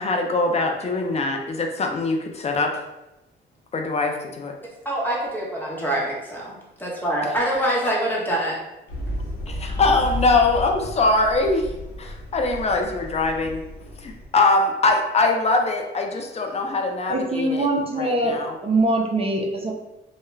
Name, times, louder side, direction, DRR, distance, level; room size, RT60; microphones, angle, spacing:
voice 1, 0.0-2.7 3.7-4.6 7.2-7.5 9.5-11.7 12.0-13.6 14.0-17.7 18.0-18.5, left 3 dB, 35° left, 3 dB, 0.4 m, -22 dB
voice 2, 4.8-8.5 9.7-9.8, right 1 dB, 10° left, -5 dB, 0.9 m, -25 dB
sound 1, 8.9-14.3, equal, 50° left, 0.9 m, -32 dB
voice 3, 17.1-19.8, right 2 dB, 30° right, 2 dB, 0.4 m, -23 dB
2.3 x 2.1 x 3.1 m, 0.95 s
cardioid pair, 90°, 20 cm